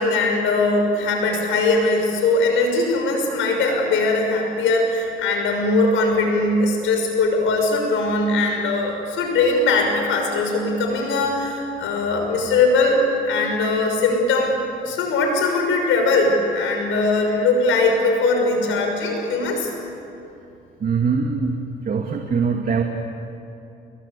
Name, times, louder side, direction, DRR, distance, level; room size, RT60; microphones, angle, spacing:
voice 1, 0.0-14.6 14.8-19.7, left 3 dB, 85° left, 3 dB, 6.1 m, -20 dB
voice 2, 20.8-21.6 21.8-22.8, right 5 dB, 45° right, 2 dB, 2.3 m, -22 dB
29.5 x 22.0 x 8.4 m, 2.8 s
cardioid pair, 90°, 20 cm